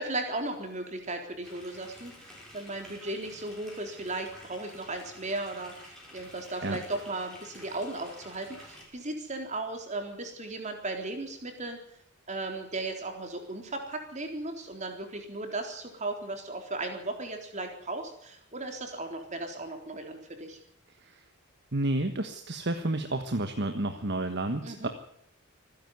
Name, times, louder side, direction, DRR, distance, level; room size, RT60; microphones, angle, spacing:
voice 1, 0.0-2.1 2.5-11.8 12.3-20.6 24.6-24.9, right 2 dB, 35° right, 4 dB, 3.9 m, -36 dB
sound 1, 1.4-8.8, equal, 5° left, 6.7 m, -50 dB
voice 2, 21.7-24.9, right 2 dB, 50° right, 7 dB, 1.4 m, -30 dB
26.5 x 10.5 x 9.5 m, 0.71 s
head